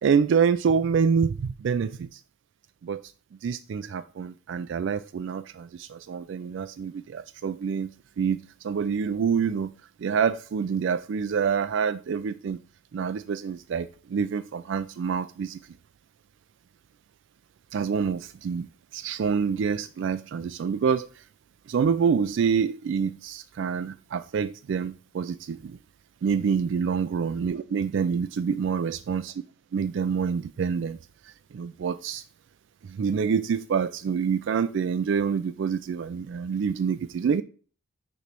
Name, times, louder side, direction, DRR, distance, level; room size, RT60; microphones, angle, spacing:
voice 1, 0.0-2.2 2.8-3.0 3.4-7.9 8.2-9.7 10.0-12.6 12.9-15.6 17.7-21.2 21.7-25.8 26.2-29.3 29.7-31.0 31.2-32.2 32.8-37.4, right 6 dB, 60° right, 12 dB, 0.3 m, -27 dB
6.7 x 3.1 x 5.9 m, 0.40 s
head